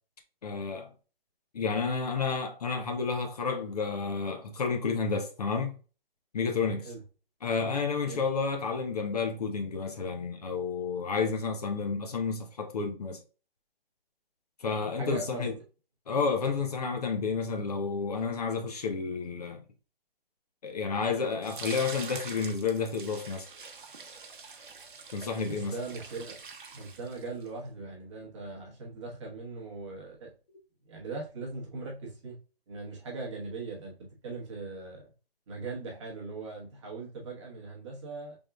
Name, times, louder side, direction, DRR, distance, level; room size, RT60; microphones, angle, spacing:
voice 1, 0.4-0.9 1.5-5.8 6.3-6.9 7.4-13.2 14.6-15.5 16.1-19.6 20.6-23.5 25.1-25.7, left 5 dB, 40° left, 0.6 m, -31 dB
voice 2, 15.0-15.6 25.5-26.4 26.7-30.3 30.9-32.4 32.7-35.1 35.5-38.4, right 3 dB, 30° right, 1.0 m, -40 dB
sound 1, 21.4-27.5, right 5 dB, 55° right, 0.9 m, -45 dB
4.7 x 3.5 x 2.2 m
figure-of-eight pair, 150°, 30 cm